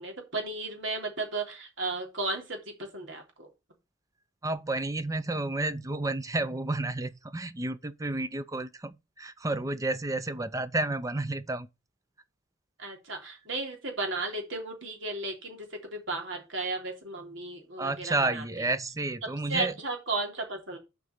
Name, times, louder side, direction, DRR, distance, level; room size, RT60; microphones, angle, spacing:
voice 1, 0.0-3.5 12.8-18.7 19.5-20.8, right 3 dB, 65° right, 3.3 m, -34 dB
voice 2, 4.4-11.7 17.8-19.7, right 2 dB, 15° right, 0.6 m, -31 dB
7.5 x 5.3 x 6.5 m
head